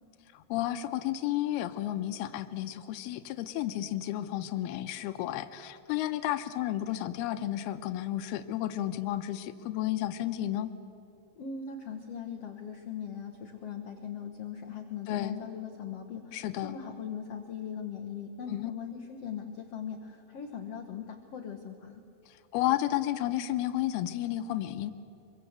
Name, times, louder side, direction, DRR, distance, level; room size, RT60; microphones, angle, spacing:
voice 1, 0.3-10.7 15.1-15.4 16.3-16.8 18.5-18.7 22.3-24.9, left 13 dB, 85° left, 9 dB, 2.7 m, -32 dB
voice 2, 11.4-22.0, left 7 dB, 65° left, 4 dB, 1.5 m, -40 dB
25.0 x 23.0 x 8.0 m, 2.8 s
omnidirectional pair, 4.5 m